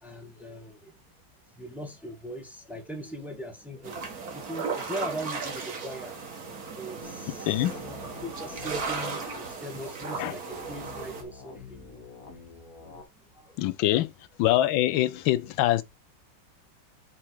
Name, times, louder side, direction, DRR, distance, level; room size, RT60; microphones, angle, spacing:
voice 1, 0.0-0.9 1.6-11.8 13.3-13.6, equal, ahead, 1.4 m, -40 dB
sound 1, 3.8-11.2, right 5 dB, 50° right, 2.1 m, -36 dB
sound 2, 7.0-9.4 10.0-13.0, left 3 dB, 45° left, 2.0 m, -47 dB
voice 2, 13.6-14.1 14.4-15.8, left 14 dB, 85° left, 1.4 m, -24 dB
7.5 x 4.5 x 4.6 m
omnidirectional pair, 2.1 m